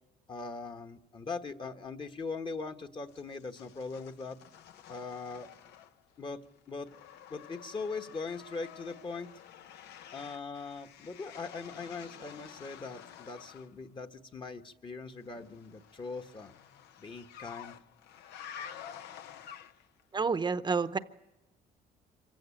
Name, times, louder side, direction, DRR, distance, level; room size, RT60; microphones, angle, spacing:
voice 1, 0.3-4.4 4.9-5.5 6.2-6.9 7.3-9.3 10.1-16.5 17.0-17.7, left 4 dB, 30° left, 7 dB, 1.4 m, -41 dB
sound 1, 3.1-6.2 6.5-13.7 15.3-20.0, left 9 dB, 80° left, 0.9 m, -50 dB
voice 2, 20.1-21.0, right 4 dB, 25° right, 10 dB, 0.8 m, -29 dB
25.5 x 16.0 x 9.0 m, 1.0 s
cardioid pair, 110°, 17 cm